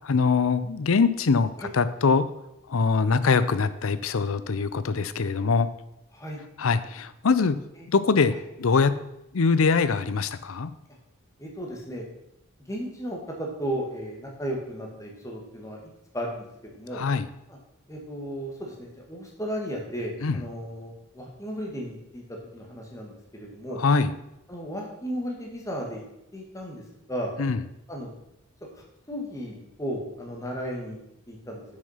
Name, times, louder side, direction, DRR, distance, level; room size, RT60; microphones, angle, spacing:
voice 1, 0.0-2.2 2.7-5.7 6.6-7.6 7.9-8.3 8.6-8.9 9.3-10.7 16.9-17.3 20.2-20.4 23.8-24.1 27.4-27.6, left 4 dB, 75° left, 14 dB, 0.6 m, -23 dB
voice 2, 11.4-12.1 12.7-16.5 16.7-17.0 17.5-17.6 17.9-22.2 22.5-23.8 24.5-26.0 26.3-26.8 27.1-27.3 27.9-28.1 28.7-31.0 31.3-31.6, equal, 15° left, -1 dB, 1.7 m, -35 dB
7.2 x 6.5 x 5.7 m, 0.85 s
head